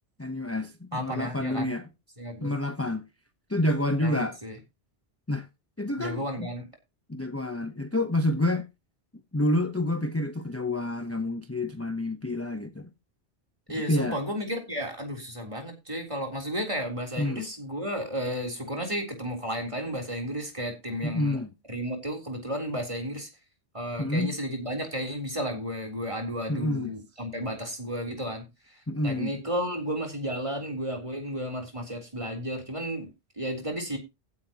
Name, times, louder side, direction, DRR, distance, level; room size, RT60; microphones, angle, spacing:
voice 1, 0.2-1.8 2.4-3.0 3.5-4.4 5.3-5.5 5.8-6.5 7.1-8.7 9.3-12.9 13.9-14.2 17.2-17.5 21.0-21.5 24.0-24.3 26.5-26.9 28.9-29.3, left 1 dB, 15° left, 0.9 m, -28 dB
voice 2, 0.9-1.8 2.2-2.5 4.0-4.6 6.0-6.7 13.7-21.4 21.7-23.3 23.7-33.1 33.4-34.0, equal, 30° right, 3.7 m, -33 dB
15.0 x 9.7 x 3.0 m
omnidirectional pair, 1.1 m